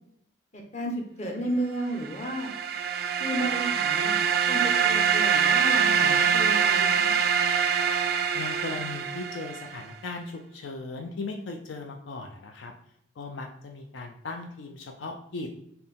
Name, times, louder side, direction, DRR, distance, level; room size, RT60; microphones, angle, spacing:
voice 1, 0.5-2.5 3.2-4.2 4.5-7.2, right 1 dB, 35° left, 1 dB, 0.9 m, -33 dB
sound 1, 2.0-9.8, right 7 dB, 55° right, 0.3 m, -24 dB
voice 2, 8.3-12.7 13.2-15.5, left 3 dB, 75° left, 3 dB, 0.5 m, -37 dB
4.4 x 2.7 x 3.6 m, 0.72 s
head